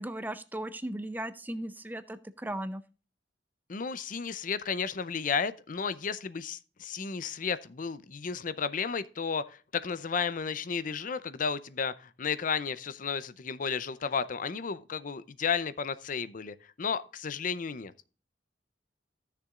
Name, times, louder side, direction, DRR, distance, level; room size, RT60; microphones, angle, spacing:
voice 1, 0.0-2.8, right 1 dB, 10° right, 0.6 m, -37 dB
voice 2, 3.7-17.9, left 6 dB, 50° left, 0.5 m, -33 dB
15.0 x 6.8 x 2.4 m
head